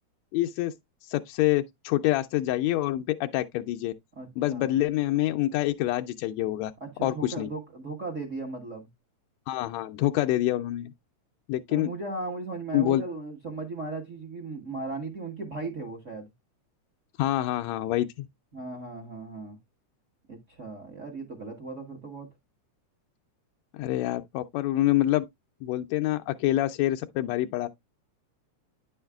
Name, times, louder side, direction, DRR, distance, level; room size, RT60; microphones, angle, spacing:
voice 1, 0.3-0.7 1.1-3.9 4.4-6.7 7.0-7.5 9.5-10.9 11.5-11.9 12.7-13.0 17.2-18.3 23.7-25.3 25.6-27.7, left 15 dB, 80° left, 1.7 m, -26 dB
voice 2, 4.1-4.8 6.8-8.9 11.7-16.3 18.5-19.6 20.3-22.3, right 3 dB, 40° right, 1.0 m, -37 dB
9.8 x 6.3 x 2.3 m
omnidirectional pair, 3.3 m